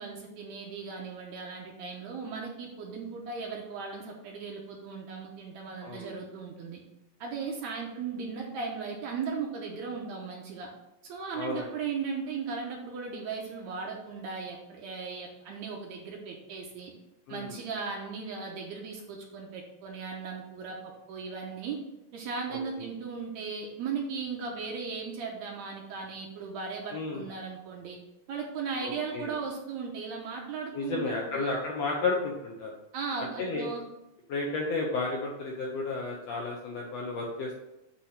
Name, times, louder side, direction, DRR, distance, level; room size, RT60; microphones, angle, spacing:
voice 1, 0.0-6.8 7.2-10.7 11.0-16.9 17.3-21.8 22.1-28.0 28.3-31.5 32.9-33.8, right 5 dB, 70° right, 0 dB, 1.9 m, -37 dB
voice 2, 11.3-11.7 17.3-17.6 26.9-27.2 28.8-29.3 30.7-32.7 33.4-33.7 34.3-37.6, left 3 dB, 75° left, -1 dB, 1.5 m, -32 dB
8.4 x 2.9 x 5.7 m, 0.92 s
omnidirectional pair, 3.8 m